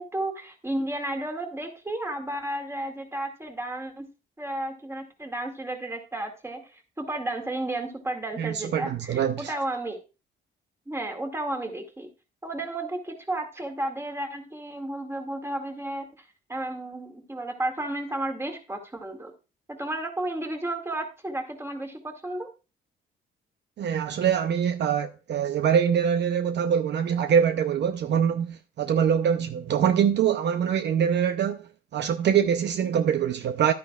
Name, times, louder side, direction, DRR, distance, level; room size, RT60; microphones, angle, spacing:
voice 1, 0.0-4.1 4.4-10.0 10.9-12.1 12.4-16.1 16.5-19.3 19.7-22.5, right 1 dB, 15° right, 2.0 m, -32 dB
voice 2, 8.4-9.5 23.8-33.7, right 8 dB, 60° right, 0.6 m, -24 dB
11.0 x 9.5 x 2.4 m
cardioid pair, 90°, 20 cm